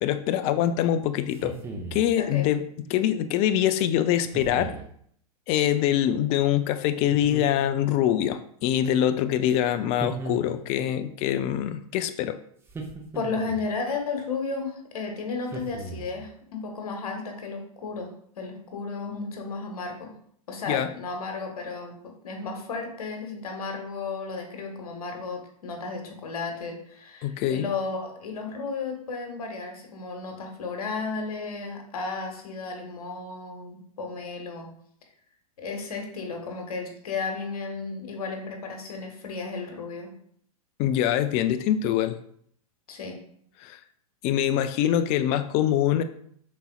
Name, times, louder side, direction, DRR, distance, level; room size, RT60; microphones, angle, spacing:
voice 1, 0.0-1.6 1.9-4.7 5.5-12.4 20.7-20.9 27.2-27.7 40.8-42.2 43.6-43.8 44.2-46.0, left 11 dB, 30° left, 10 dB, 0.4 m, -24 dB
sound 1, 1.3-2.1 4.3-4.9 7.1-7.9 10.0-10.9 12.7-13.7 15.5-16.3, right 3 dB, 10° right, 0.6 m, -37 dB
voice 2, 2.2-2.5 13.1-20.1 20.5-34.7 35.6-40.1 42.9-43.2, left 4 dB, 70° left, 3 dB, 1.3 m, -34 dB
5.4 x 4.0 x 2.3 m, 0.64 s
hypercardioid pair, 110°, 20 cm